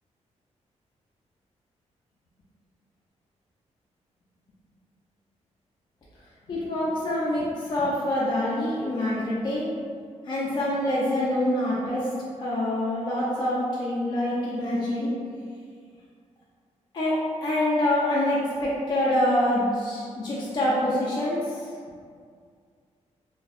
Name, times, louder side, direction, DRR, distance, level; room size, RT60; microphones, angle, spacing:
voice 1, 6.5-9.7 10.2-12.0 12.4-15.1 16.9-17.2 17.4-21.7, left 1 dB, 35° left, -6 dB, 0.4 m, -25 dB
2.5 x 2.0 x 2.4 m, 2.1 s
wide cardioid pair, 145°, 12 cm